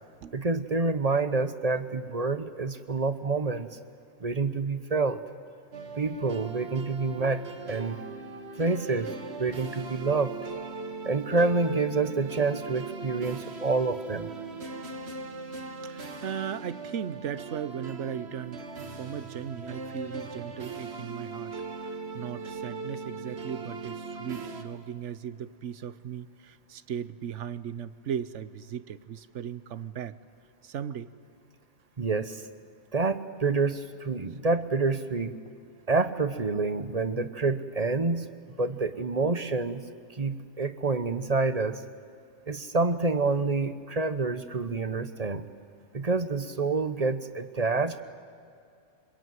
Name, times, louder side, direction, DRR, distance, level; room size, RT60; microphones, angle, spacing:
voice 1, 0.3-3.7 4.2-5.2 5.9-8.0 8.6-9.1 9.4-10.4 11.0-14.3 32.0-32.5 32.9-35.4 35.9-38.3 38.6-39.8 40.1-41.8 42.5-45.4 45.9-48.0, right 3 dB, 35° right, 12 dB, 0.9 m, -27 dB
sound 1, 5.7-24.6, right 4 dB, 60° right, 1.9 m, -39 dB
voice 2, 15.8-21.5 21.8-30.1 30.6-31.1, right 9 dB, 75° right, 15 dB, 1.2 m, -37 dB
24.5 x 22.0 x 9.3 m, 2.4 s
omnidirectional pair, 1.2 m